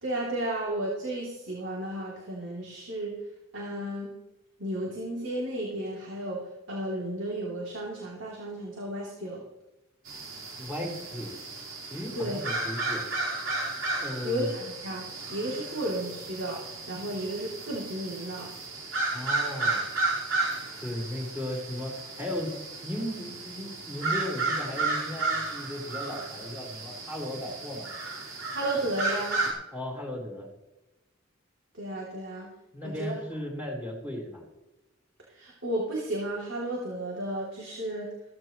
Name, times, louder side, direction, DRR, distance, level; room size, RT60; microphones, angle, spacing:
voice 1, 0.0-3.1 3.5-4.1 4.6-6.4 6.7-9.4 12.1-12.4 14.2-16.6 16.9-18.5 28.5-29.4 31.7-32.5 32.8-33.2 35.3-38.1, right 1 dB, 65° right, -3 dB, 3.0 m, -33 dB
sound 1, 10.1-29.5, right 3 dB, 90° right, 4.5 m, -33 dB
voice 2, 10.6-11.4 11.9-13.0 14.0-14.5 19.1-19.9 20.8-22.5 22.8-27.9 29.7-30.5 32.7-34.4, left 1 dB, 10° right, -2 dB, 4.3 m, -36 dB
15.5 x 14.5 x 3.2 m, 0.97 s
head